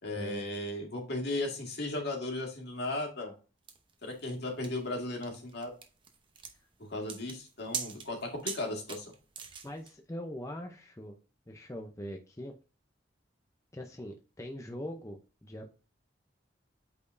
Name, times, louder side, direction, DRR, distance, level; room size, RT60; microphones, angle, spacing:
voice 1, 0.0-3.3 4.0-5.7 6.9-9.1, left 2 dB, 60° left, 1 dB, 2.0 m, -36 dB
sound 1, 3.7-9.9, right 6 dB, 25° right, 0.9 m, -42 dB
voice 2, 9.6-11.2 11.5-12.5 13.7-15.7, equal, 15° left, 3 dB, 0.6 m, -42 dB
8.5 x 4.2 x 2.6 m, 0.33 s
head